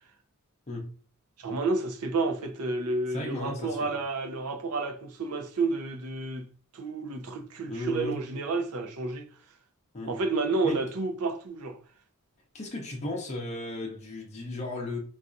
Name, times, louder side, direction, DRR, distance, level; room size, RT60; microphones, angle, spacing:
voice 1, 1.4-6.4 6.7-9.3 10.1-11.8, right 3 dB, 80° right, 0.6 m, -30 dB
voice 2, 3.1-3.9 7.7-8.2 9.9-10.2 10.6-10.8 12.5-15.0, left 2 dB, 30° left, 0.5 m, -35 dB
3.9 x 2.3 x 2.5 m
head